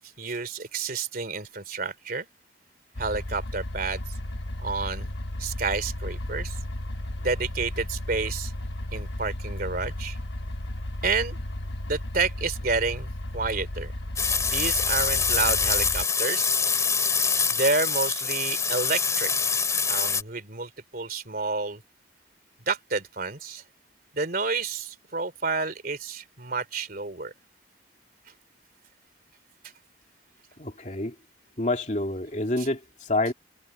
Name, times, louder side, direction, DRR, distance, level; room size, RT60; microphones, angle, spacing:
voice 1, 0.2-2.3 3.0-4.0 4.6-5.1 5.4-6.6 7.2-8.5 8.9-10.2 11.0-11.4 11.9-13.9 14.4-16.6 17.5-19.3 19.9-21.8 22.7-23.6 24.1-27.3 32.6-32.7 33.3-33.4, right 4 dB, 50° right, 3.3 m, -30 dB
sound 1, 2.9-16.0, left 1 dB, 65° left, 1.2 m, -34 dB
sound 2, 14.2-20.2, left 5 dB, 15° left, 2.7 m, -25 dB
voice 2, 30.6-31.1 31.6-33.3, left 2 dB, 40° left, 2.9 m, -28 dB
head